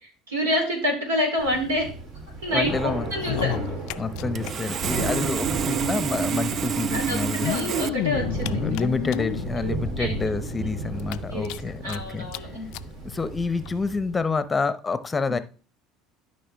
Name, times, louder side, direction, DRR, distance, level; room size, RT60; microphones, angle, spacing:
voice 1, 0.3-1.9 2.4-3.5 6.9-7.2 7.4-8.9 9.6-10.1 11.3-11.6 11.8-12.7 15.3-15.4, left 1 dB, 85° right, 3.3 m, -27 dB
Thunder / Rain, 1.4-14.3, right 3 dB, 60° right, 2.8 m, -34 dB
voice 2, 2.5-3.1 4.0-7.5 8.6-12.3 13.0-15.4, left 4 dB, 20° left, 0.7 m, -28 dB
sound 1, 3.1-4.5 4.8-4.9 5.1-5.2 6.2-6.3 7.2-9.5 10.1-10.2 10.5-10.6 11.0-12.0 12.3-12.4 12.7-12.9 13.7-13.8, left 16 dB, 65° left, 0.4 m, -30 dB
Sawing, 3.9-4.0 4.4-7.9, right 8 dB, 45° right, 0.3 m, -28 dB
12.5 x 5.4 x 3.4 m
hypercardioid pair, 70°, 0 cm